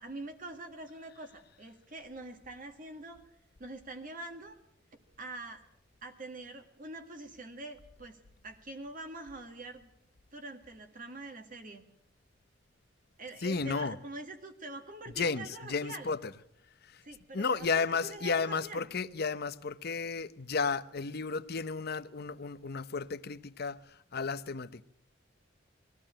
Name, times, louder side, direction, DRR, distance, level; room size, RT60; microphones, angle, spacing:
voice 1, 0.0-3.2 3.6-4.6 5.2-5.6 6.0-8.2 8.4-9.9 10.3-11.8 13.2-16.1 17.0-18.9, right 2 dB, 45° right, 1.8 m, -45 dB
voice 2, 13.4-14.0 15.2-16.4 17.3-23.8 24.1-24.8, left 4 dB, 55° left, 0.8 m, -33 dB
21.0 x 14.5 x 8.9 m
head